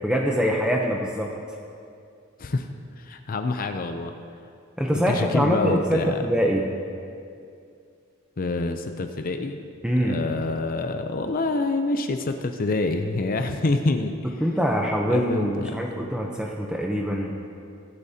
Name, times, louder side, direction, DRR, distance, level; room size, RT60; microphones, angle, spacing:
voice 1, 0.0-1.3 4.8-6.7 9.8-10.2 14.4-17.3, equal, 5° right, -1 dB, 0.7 m, -24 dB
voice 2, 3.0-4.1 4.9-6.2 8.4-9.6 10.0-14.1 15.1-15.7, left 3 dB, 45° left, 6 dB, 0.5 m, -26 dB
22.5 x 8.5 x 2.8 m, 2.4 s
head